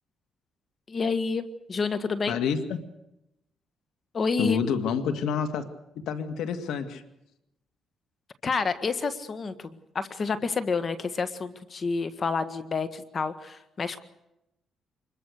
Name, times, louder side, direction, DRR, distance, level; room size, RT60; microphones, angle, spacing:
voice 1, 0.9-2.4 4.1-4.6 8.4-9.7 9.9-14.0, left 4 dB, 40° left, 12 dB, 1.7 m, -29 dB
voice 2, 2.3-2.8 4.4-5.7 6.1-7.0, left 6 dB, 80° left, 10 dB, 2.2 m, -28 dB
25.5 x 22.0 x 6.6 m, 0.85 s
cardioid pair, 90°, 0 cm